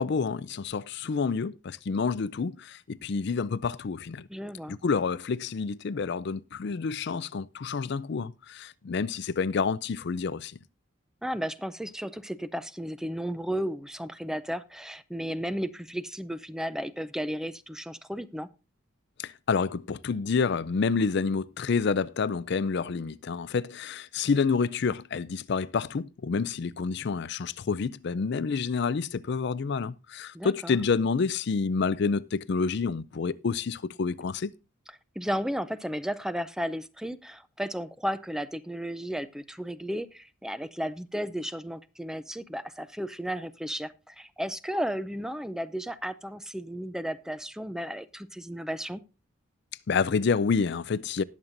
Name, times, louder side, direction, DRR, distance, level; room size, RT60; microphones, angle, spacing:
voice 1, 0.0-4.3 4.7-10.6 19.2-34.5 49.9-51.2, left 5 dB, 55° left, 0.4 m, -28 dB
voice 2, 4.3-4.8 11.2-18.5 30.3-30.8 35.2-49.0, equal, 5° right, 0.4 m, -34 dB
19.5 x 7.4 x 2.6 m
head